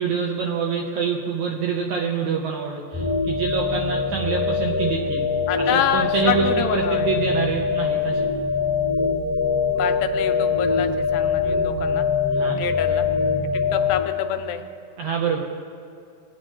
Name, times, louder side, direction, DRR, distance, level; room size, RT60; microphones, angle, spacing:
voice 1, 0.0-5.3 5.6-8.3 12.3-12.6 15.0-15.4, right 6 dB, 75° right, 0 dB, 1.9 m, -26 dB
sound 1, 2.9-14.0, left 5 dB, 10° right, 0.4 m, -23 dB
voice 2, 5.5-7.1 9.7-12.1 12.6-13.1 13.5-14.6, left 10 dB, 85° left, 7 dB, 2.4 m, -27 dB
21.5 x 8.8 x 3.0 m, 2.5 s
omnidirectional pair, 4.1 m